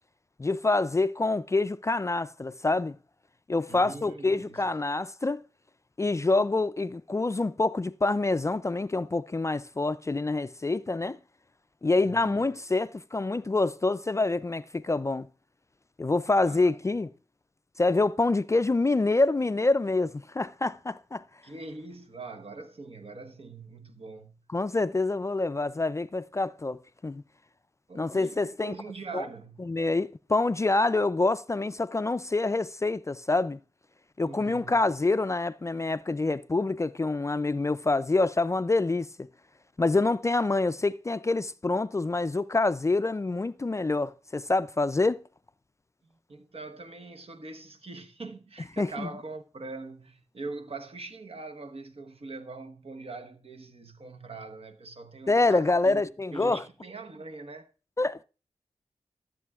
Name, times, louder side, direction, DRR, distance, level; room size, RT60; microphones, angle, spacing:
voice 1, 0.4-2.9 3.5-5.4 6.0-11.2 11.8-15.3 16.0-17.1 17.8-21.2 24.5-27.2 27.9-28.7 29.1-29.2 29.6-33.6 34.2-39.3 39.8-45.2 48.8-49.1 55.3-56.6 58.0-58.2, left 3 dB, 25° left, 0.3 m, -26 dB
voice 2, 3.7-4.7 12.0-12.5 16.4-16.6 21.4-24.4 27.9-29.8 34.2-34.8 46.3-56.0 56.3-57.7, right 3 dB, 55° right, 1.1 m, -42 dB
13.5 x 7.6 x 2.4 m
cardioid pair, 50°, 12 cm